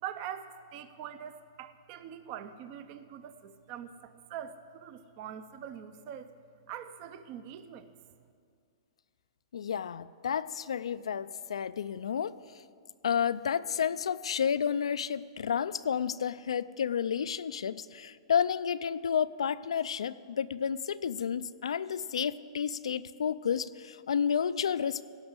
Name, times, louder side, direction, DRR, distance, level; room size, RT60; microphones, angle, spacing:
voice 1, 0.0-6.3 6.7-7.9, right 9 dB, 40° right, 11 dB, 0.7 m, -43 dB
voice 2, 9.5-12.3 13.0-25.0, left 7 dB, 90° left, 16 dB, 0.4 m, -31 dB
16.5 x 6.4 x 8.0 m, 2.2 s
hypercardioid pair, 145°, 3 cm